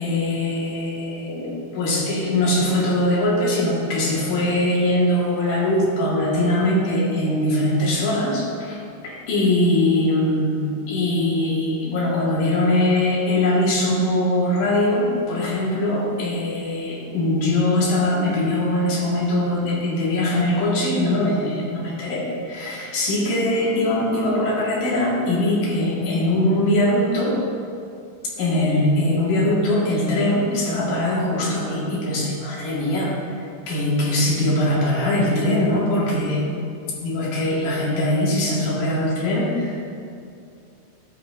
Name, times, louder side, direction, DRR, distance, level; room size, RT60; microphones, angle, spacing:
voice 1, 0.0-8.8 9.0-27.4 28.4-33.1 33.7-36.7 37.0-39.9, left 1 dB, 60° left, -5 dB, 2.6 m, -21 dB
12.5 x 9.0 x 2.5 m, 2.4 s
omnidirectional pair, 5.5 m